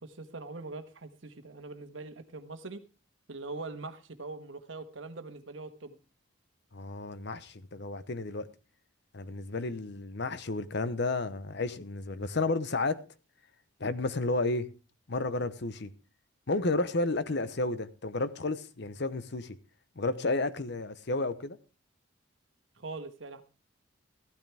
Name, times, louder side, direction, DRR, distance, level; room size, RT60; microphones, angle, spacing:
voice 1, 0.0-2.8 3.3-6.0 22.8-23.4, right 3 dB, 70° right, 1.4 m, -42 dB
voice 2, 6.7-8.5 9.1-13.0 13.8-14.7 15.1-15.9 16.5-19.6 20.0-21.6, left 2 dB, 55° left, 0.9 m, -32 dB
15.0 x 12.5 x 3.5 m
head